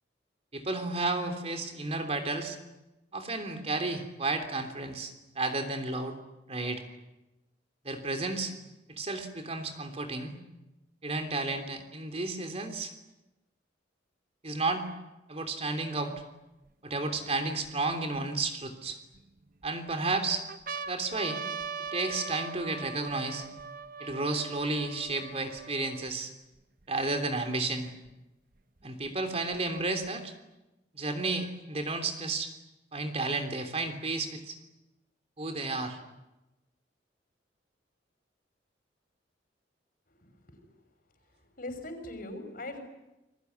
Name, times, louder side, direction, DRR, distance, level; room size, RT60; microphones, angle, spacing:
voice 1, 0.5-2.6 3.1-6.2 6.5-6.8 7.8-8.5 8.9-10.3 11.0-12.9 14.4-14.9 15.3-16.1 16.8-19.0 19.6-20.4 20.9-21.4 21.9-23.5 24.0-26.3 26.9-27.9 28.8-30.3 30.9-32.5 32.9-34.6 35.4-36.0, right 3 dB, 35° right, 7 dB, 3.3 m, -32 dB
sound 1, 16.2-16.3 16.9-18.2 18.9-19.7 20.1-20.2 20.5-26.1 26.8-26.9 27.1-28.1 29.0-30.1, right 5 dB, 50° right, 1.0 m, -41 dB
voice 2, 40.2-40.7 41.6-42.8, left 2 dB, 50° left, 7 dB, 5.8 m, -41 dB
29.0 x 21.5 x 9.6 m, 0.99 s
head